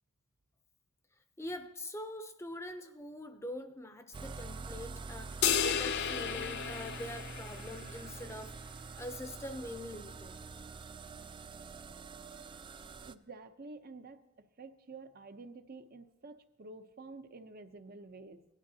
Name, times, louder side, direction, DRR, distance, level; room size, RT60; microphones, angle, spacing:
voice 1, 1.4-10.4, left 1 dB, 15° left, 8 dB, 0.6 m, -44 dB
sound 1, 4.1-13.2, right 4 dB, 25° right, 0.3 m, -46 dB
sound 2, 5.4-8.0, left 8 dB, 50° left, 0.5 m, -33 dB
voice 2, 13.1-18.4, right 3 dB, 45° right, 8 dB, 0.7 m, -50 dB
17.5 x 11.5 x 2.8 m, 0.89 s
head